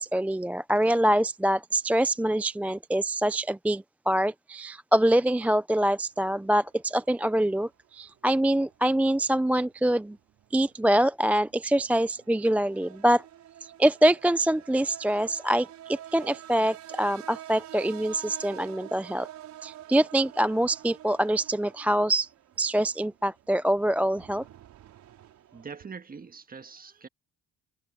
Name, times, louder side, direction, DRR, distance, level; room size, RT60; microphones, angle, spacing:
voice 1, 0.0-10.2 10.5-13.2 13.6-19.3 19.6-22.3 22.6-24.4, right 1 dB, 5° right, 0.4 m, -25 dB
sound 1, 6.1-25.9, right 12 dB, 65° right, 5.4 m, -49 dB
voice 2, 25.5-27.1, right 5 dB, 30° right, 1.6 m, -43 dB
supercardioid pair, 80°, 30 cm